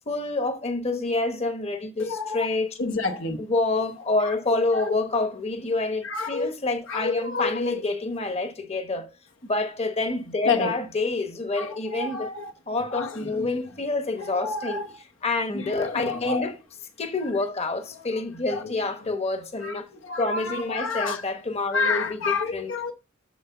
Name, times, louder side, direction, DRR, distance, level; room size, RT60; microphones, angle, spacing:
voice 1, 0.1-2.7 3.4-9.1 9.4-12.3 12.7-14.8 15.2-16.6 17.0-19.9 20.2-22.7, left 3 dB, 30° left, 1.1 m, -27 dB
voice 2, 2.0-2.5 2.8-3.4 3.7-3.8 4.7-4.9 6.0-6.5 6.9-7.7 10.4-10.7 11.6-12.5 12.9-13.6 14.2-15.0 15.5-16.5 17.9-18.2 18.5-18.7 19.6-21.2 21.7-22.9, left 4 dB, 75° left, 1.0 m, -29 dB
6.8 x 6.3 x 6.8 m
head